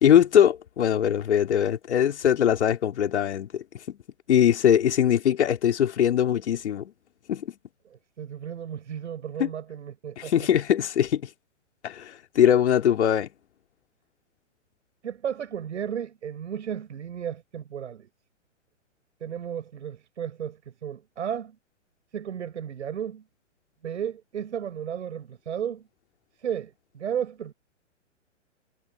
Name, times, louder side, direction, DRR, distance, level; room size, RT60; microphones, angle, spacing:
voice 1, 0.0-4.0 4.3-6.9 7.3-7.5 9.4-9.5 10.2-11.3 11.8-13.3, left 9 dB, 65° left, 4.1 m, -22 dB
voice 2, 7.9-10.3 15.0-18.1 19.2-21.6 22.1-23.2 23.8-25.8 26.4-27.5, right 9 dB, 65° right, 7.1 m, -34 dB
figure-of-eight pair, 115°, 37 cm